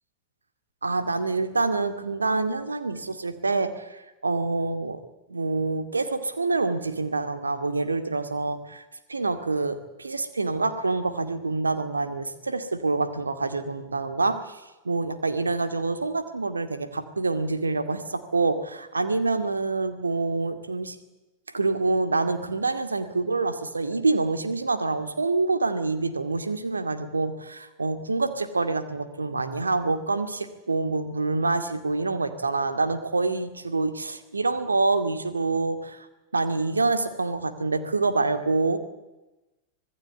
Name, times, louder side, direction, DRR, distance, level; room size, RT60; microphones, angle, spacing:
voice 1, 0.8-5.0 5.3-8.8 9.1-21.0 21.5-36.1 36.3-38.8, right 3 dB, 80° right, 9 dB, 2.2 m, -26 dB
26.0 x 19.0 x 8.4 m, 1.0 s
figure-of-eight pair, 90°, 0 cm